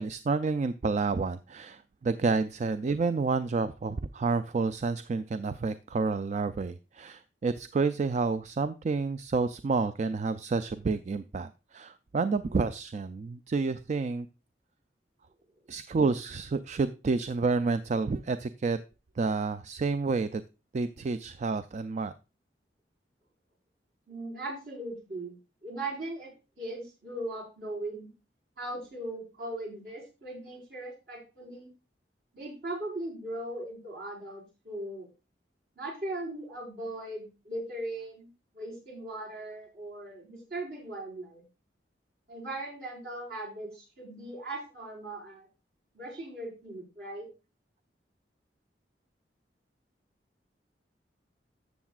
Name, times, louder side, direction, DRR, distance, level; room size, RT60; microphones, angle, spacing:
voice 1, 0.0-14.3 15.7-18.8 19.2-20.4 20.7-22.1, right 4 dB, 40° right, 12 dB, 0.3 m, -29 dB
voice 2, 24.1-25.4 25.6-26.3 26.6-28.1 28.6-31.7 32.3-35.1 35.8-38.3 38.5-41.4 42.3-45.5 45.9-47.3, right 1 dB, 65° right, -4 dB, 4.7 m, -39 dB
13.0 x 7.2 x 2.4 m, 0.30 s
head